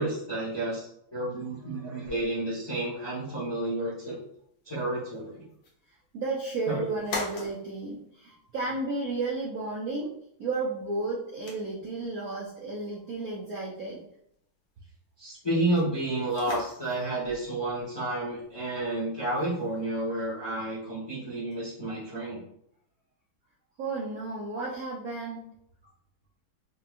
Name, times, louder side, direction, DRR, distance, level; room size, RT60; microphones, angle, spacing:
voice 1, 0.0-4.2 4.7-5.4 6.7-6.8 15.2-22.4, right 1 dB, 20° left, -8 dB, 0.6 m, -31 dB
sound 1, 2.0-20.5, left 3 dB, 70° left, 1.6 m, -46 dB
voice 2, 6.1-10.1 10.4-14.0 23.8-25.5, right 3 dB, 75° right, -4 dB, 0.8 m, -33 dB
4.4 x 2.3 x 2.5 m, 0.71 s
omnidirectional pair, 2.2 m